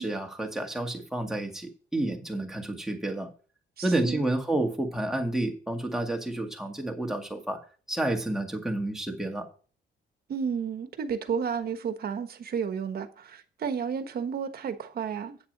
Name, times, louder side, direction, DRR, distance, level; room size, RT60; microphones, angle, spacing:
voice 1, 0.0-3.3 3.8-7.6 7.9-9.5, right 1 dB, ahead, 1.9 m, -30 dB
voice 2, 3.8-4.2 10.3-15.5, right 6 dB, 55° right, 1.3 m, -32 dB
8.9 x 6.9 x 5.4 m
cardioid pair, 125°, 19 cm